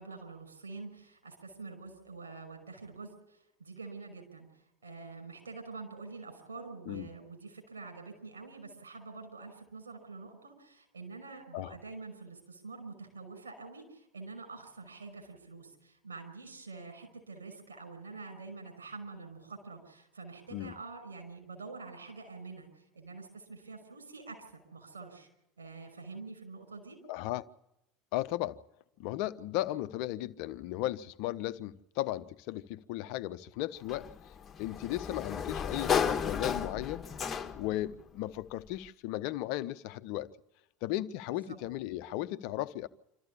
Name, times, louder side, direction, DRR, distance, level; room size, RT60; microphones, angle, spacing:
voice 1, 0.0-25.3 25.6-27.0 41.3-41.6, right 4 dB, 85° right, 5.6 m, -46 dB
voice 2, 27.1-27.5 28.1-28.6 29.0-37.1 37.5-40.3 40.8-42.9, left 15 dB, 60° left, 0.8 m, -36 dB
Sliding door, 33.9-37.8, left 7 dB, 30° left, 1.6 m, -33 dB
27.0 x 14.0 x 8.5 m
hypercardioid pair, 80°, 0 cm